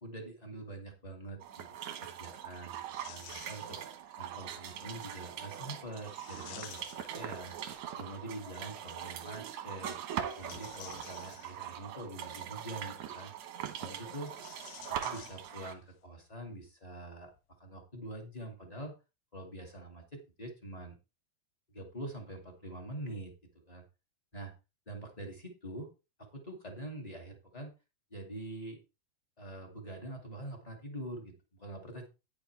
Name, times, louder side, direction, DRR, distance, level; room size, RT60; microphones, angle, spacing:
voice 1, 0.0-1.7 2.0-3.8 4.2-7.6 8.0-10.0 10.4-13.3 13.8-14.3 14.9-17.3 17.6-18.9 19.3-21.0 21.7-23.3 23.6-23.8 24.3-24.5 24.8-25.9 26.2-27.7 28.1-28.8 29.4-32.1, right 1 dB, 15° left, 2 dB, 1.3 m, -45 dB
sound 1, 1.4-15.7, right 10 dB, 65° right, 1.8 m, -42 dB
sound 2, 3.0-4.1 6.0-7.9 10.1-11.9 14.1-15.9 16.2-16.3 17.2-17.4, left 14 dB, 85° left, 1.9 m, -52 dB
10.5 x 10.0 x 3.3 m, 0.28 s
omnidirectional pair, 4.7 m